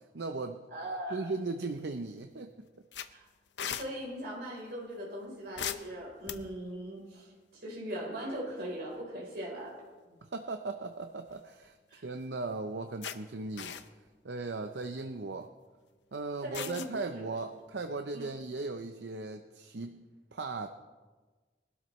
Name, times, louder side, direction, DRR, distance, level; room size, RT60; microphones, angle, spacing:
voice 1, 0.1-0.6 1.1-2.5 10.2-13.8 14.2-15.5 16.1-20.0 20.3-20.7, right 3 dB, 80° right, 7 dB, 0.6 m, -37 dB
voice 2, 0.7-1.3 3.1-3.2 3.7-9.8 11.9-12.1 16.4-17.2 18.1-18.4, right 1 dB, 65° right, -4 dB, 3.8 m, -40 dB
sound 1, 1.6-2.1 2.4-2.5 2.9-3.9 5.6-6.7 8.3-8.6 8.9-9.0 11.0-11.7 12.2-12.3 13.0-13.2 13.5-14.1 14.7-14.9 16.5-16.9, left 8 dB, 90° left, 0.7 m, -39 dB
22.0 x 12.5 x 3.1 m, 1.4 s
head